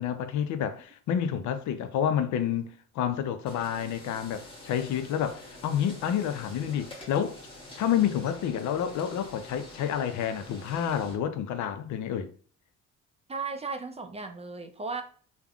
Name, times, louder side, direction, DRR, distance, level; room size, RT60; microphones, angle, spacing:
voice 1, 0.0-7.4 7.8-12.3, left 9 dB, 70° left, 0.5 m, -29 dB
sound 1, 3.5-11.1, left 1 dB, 15° left, 1.0 m, -47 dB
voice 2, 13.3-15.0, right 4 dB, 20° right, 0.4 m, -35 dB
3.3 x 2.1 x 2.3 m
cardioid pair, 90°, 30 cm